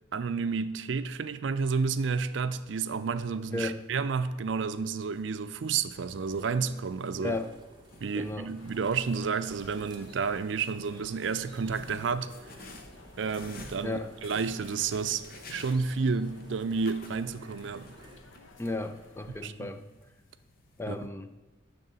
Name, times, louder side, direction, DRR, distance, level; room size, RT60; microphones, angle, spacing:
voice 1, 0.1-7.3 8.0-12.3 13.2-15.2 15.5-17.9 19.4-19.7 20.9-21.0, right 5 dB, 70° right, 0.4 m, -31 dB
sound 1, 2.6-21.1, left 3 dB, 50° left, 0.9 m, -54 dB
sound 2, 5.9-18.2, right 2 dB, 25° right, 0.9 m, -54 dB
voice 2, 7.2-7.5 8.2-8.6 13.8-14.1 18.6-19.8 20.8-21.3, left 2 dB, 10° left, 0.4 m, -34 dB
sound 3, 8.6-19.4, left 2 dB, 90° left, 0.9 m, -54 dB
10.5 x 3.6 x 6.9 m
head